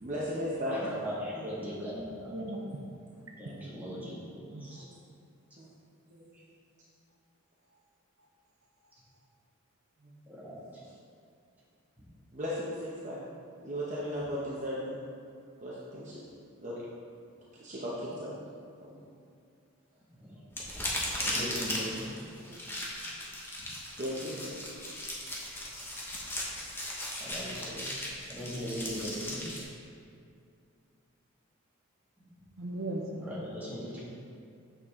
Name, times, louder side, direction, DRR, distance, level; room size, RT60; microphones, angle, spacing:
voice 1, 0.0-0.7 1.6-1.7 3.5-3.6 5.6-5.7 6.1-6.4 10.0-10.1 12.3-13.2 13.6-15.0 15.6-16.2 16.6-16.8 17.5-18.4 18.9-19.0 22.2-22.5 24.0-24.6, equal, 35° right, -7 dB, 0.9 m, -36 dB
voice 2, 0.7-2.4 3.4-4.8 6.3-6.4 10.3-10.8 20.1-20.4 21.2-22.0 23.6-23.7 27.2-27.9 28.3-29.4 32.2-32.3 33.2-34.0, equal, 10° right, -9 dB, 1.9 m, -39 dB
voice 3, 2.3-2.8 3.1-3.5 4.5-4.8 7.7-7.8 8.2-8.3 8.8-8.9 32.6-33.3, right 1 dB, 70° right, 1 dB, 0.8 m, -39 dB
sound 1, 20.5-29.6, left 1 dB, 10° left, 1.1 m, -37 dB
8.5 x 6.7 x 3.7 m, 2.4 s
head